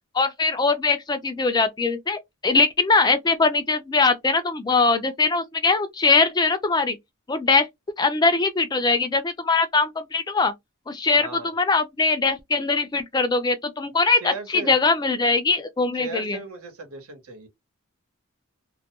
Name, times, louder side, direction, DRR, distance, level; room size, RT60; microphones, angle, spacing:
voice 1, 0.1-7.0 7.3-7.7 8.0-10.5 10.9-16.4, left 4 dB, 20° left, 0.3 m, -21 dB
voice 2, 11.2-11.5 14.2-14.7 15.9-17.5, right 3 dB, 80° right, 1.0 m, -37 dB
2.3 x 2.2 x 2.8 m
head